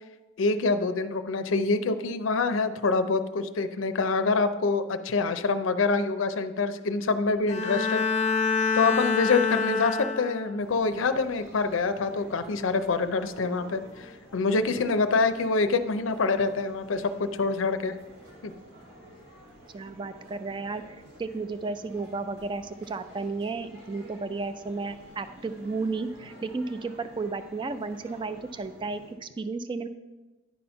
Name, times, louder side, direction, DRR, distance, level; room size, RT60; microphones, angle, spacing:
voice 1, 0.4-8.0 8.7-18.0 18.4-18.5, left 4 dB, 75° left, 10 dB, 0.5 m, -26 dB
Bowed string instrument, 7.5-10.7, left 4 dB, 35° left, 0.6 m, -26 dB
sound 1, 10.6-29.1, equal, 70° right, 2.3 m, -50 dB
voice 2, 19.7-29.9, right 3 dB, 25° right, 11 dB, 0.3 m, -33 dB
10.0 x 4.3 x 5.5 m, 1.1 s
head